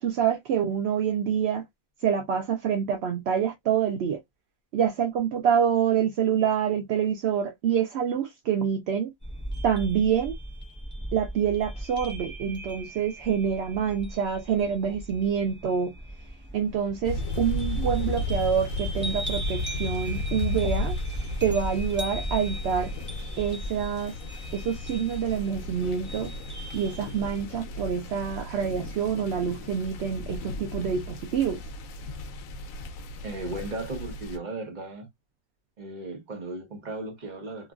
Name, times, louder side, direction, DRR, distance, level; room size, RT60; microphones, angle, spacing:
voice 1, 0.0-1.6 2.0-4.2 4.7-9.1 9.6-10.3 11.1-15.9 16.5-21.0 21.4-22.9 23.4-24.1 24.5-26.3 26.7-31.6, right 8 dB, 60° right, 0.7 m, -26 dB
sound 1, 9.2-27.4, right 1 dB, 10° right, 0.8 m, -37 dB
sound 2, 17.0-34.4, left 2 dB, 80° left, 1.0 m, -35 dB
voice 2, 33.2-35.1 35.8-37.7, right 2 dB, 35° right, 1.0 m, -36 dB
2.9 x 2.4 x 2.4 m
omnidirectional pair, 1.4 m